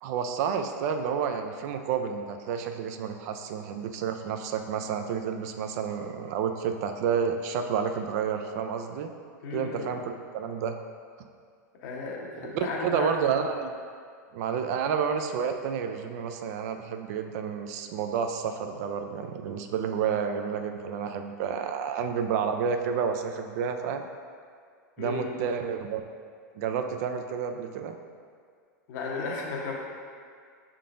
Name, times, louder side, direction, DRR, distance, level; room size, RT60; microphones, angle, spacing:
voice 1, 0.0-9.1 9.5-10.0 10.3-10.8 12.4-13.7 14.3-24.1 25.0-26.0 26.5-28.0, right 7 dB, 60° right, 6 dB, 0.4 m, -30 dB
voice 2, 9.4-9.9 11.7-13.1 25.0-25.4 28.9-29.7, left 4 dB, 60° left, -1 dB, 0.9 m, -34 dB
5.6 x 3.6 x 2.5 m, 2.1 s
hypercardioid pair, 120°, 10 cm